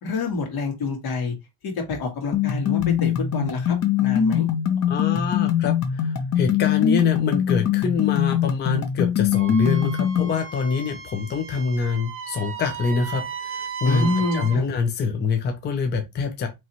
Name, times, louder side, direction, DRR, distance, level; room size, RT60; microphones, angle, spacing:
voice 1, 0.0-1.3 1.6-4.5 13.8-14.6, left 3 dB, 65° left, 1.6 m, -27 dB
sound 1, 2.3-10.3, left 9 dB, 45° left, 0.8 m, -22 dB
voice 2, 4.9-16.5, left 5 dB, 25° left, 0.5 m, -25 dB
Wind instrument woodwind instrument, 9.3-14.6, right 6 dB, 35° right, 0.7 m, -35 dB
4.1 x 3.1 x 3.0 m
cardioid pair, 150°, 39 cm